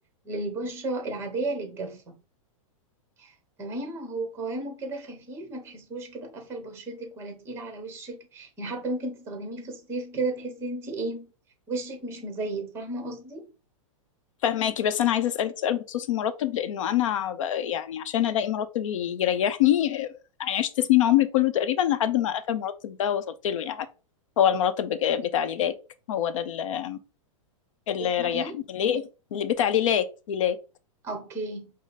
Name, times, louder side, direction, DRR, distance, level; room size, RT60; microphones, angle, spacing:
voice 1, 0.2-2.1 3.2-3.3 3.6-11.3 11.7-13.5 28.0-28.6 31.0-31.7, right 2 dB, 15° right, 1.0 m, -34 dB
voice 2, 14.4-23.9 24.4-25.7 26.1-27.0 27.9-30.6, left 10 dB, 70° left, 0.6 m, -25 dB
5.1 x 2.0 x 4.0 m
supercardioid pair, 160°, 17 cm